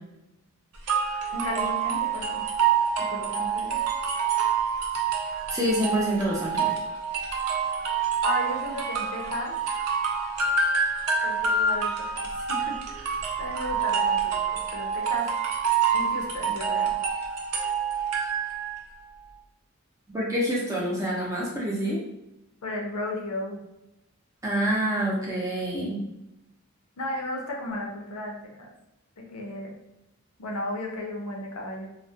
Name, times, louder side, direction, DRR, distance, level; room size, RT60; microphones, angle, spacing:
sound 1, 0.9-18.8, right 6 dB, 90° right, 0.5 m, -27 dB
voice 1, 1.3-2.4 3.0-3.8 8.2-9.6 11.2-12.2 12.5-12.7 13.4-15.3 15.9-16.9 22.6-23.6 27.0-28.7 29.2-29.8 30.4-31.9, left 1 dB, 90° left, 0 dB, 0.6 m, -34 dB
voice 2, 5.5-6.7 20.1-22.0 24.4-26.0, equal, 15° right, -5 dB, 0.5 m, -27 dB
2.2 x 2.1 x 2.6 m, 0.89 s
head